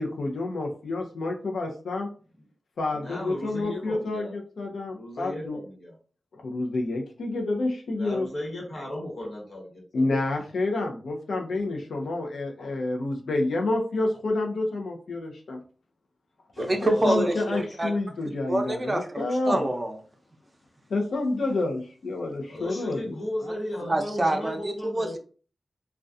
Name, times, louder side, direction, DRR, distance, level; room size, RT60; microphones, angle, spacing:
voice 1, 0.0-2.1 2.8-4.3 4.6-5.6 6.3-8.3 9.9-15.6 16.8-19.7 20.9-23.1, left 2 dB, 85° left, 0.5 m, -28 dB
voice 2, 2.9-4.4 4.9-5.9 7.9-10.0 16.5-17.7 22.4-25.1, left 1 dB, 70° left, 1.0 m, -36 dB
voice 3, 16.6-17.9 18.5-20.0 23.5-23.6 23.9-25.2, right 1 dB, 35° right, 0.5 m, -27 dB
2.3 x 2.2 x 2.5 m
cardioid pair, 45°, 0 cm